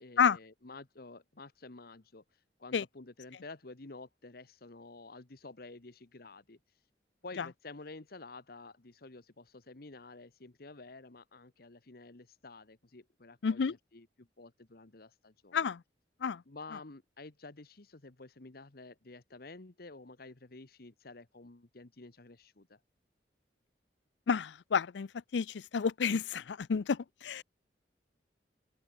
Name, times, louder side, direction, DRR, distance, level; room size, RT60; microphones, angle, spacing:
voice 1, 0.0-6.6 7.2-15.7 16.5-22.8, left 3 dB, 60° left, 1.3 m, -51 dB
voice 2, 13.4-13.7 15.5-15.8 16.2-16.4 24.3-27.4, left 6 dB, 90° left, 0.5 m, -30 dB
open air
head